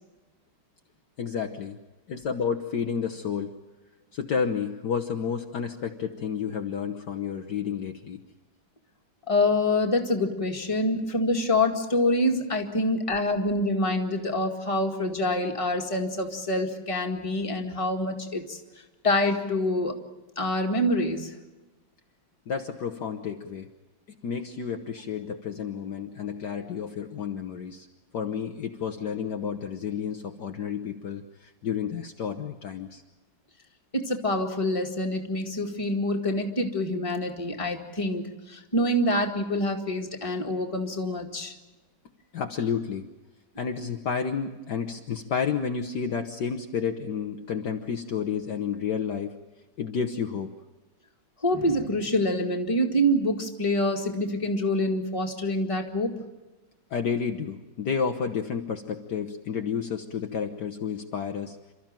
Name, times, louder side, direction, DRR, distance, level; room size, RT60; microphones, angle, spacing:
voice 1, 1.2-1.8 2.1-3.5 4.1-8.2 22.5-23.7 24.2-27.9 28.1-33.0 42.3-43.1 43.6-49.4 49.8-50.5 56.9-61.6, left 6 dB, 60° left, 5 dB, 1.5 m, -31 dB
voice 2, 9.3-18.6 19.0-19.9 20.4-21.3 33.9-41.5 51.4-56.1, left 1 dB, 15° left, 2 dB, 2.0 m, -26 dB
28.5 x 13.5 x 9.0 m, 1.2 s
omnidirectional pair, 2.2 m